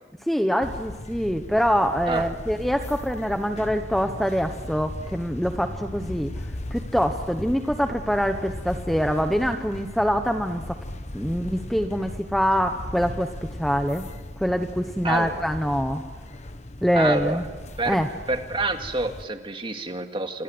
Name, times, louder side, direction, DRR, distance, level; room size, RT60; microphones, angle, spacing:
voice 1, 0.3-6.3 6.7-10.8 11.1-14.1 14.4-16.0 16.8-17.4 17.9-18.1, equal, ahead, 6 dB, 1.0 m, -24 dB
sound 1, 0.6-19.2, left 1 dB, 40° left, 1.4 m, -37 dB
voice 2, 15.0-15.4 17.0-17.4 17.8-18.0 18.3-20.4, right 2 dB, 30° right, 5 dB, 2.2 m, -28 dB
28.5 x 26.0 x 8.0 m, 1.3 s
head